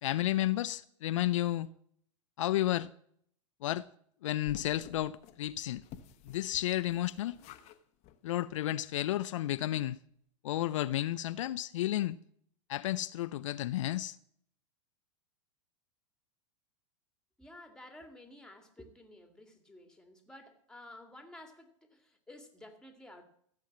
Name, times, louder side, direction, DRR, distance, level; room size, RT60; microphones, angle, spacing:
voice 1, 0.0-1.7 2.4-2.9 3.6-3.9 4.2-5.8 6.3-7.4 8.2-10.0 10.4-12.2 12.7-14.2, left 14 dB, 70° left, 0.5 m, -32 dB
sound 1, 4.4-7.8 8.0-8.2 8.6-8.7 9.0-9.1, left 11 dB, 45° left, 1.2 m, -51 dB
voice 2, 17.4-23.2, left 1 dB, 5° left, 2.3 m, -53 dB
15.0 x 7.6 x 7.4 m
hypercardioid pair, 100°, 17 cm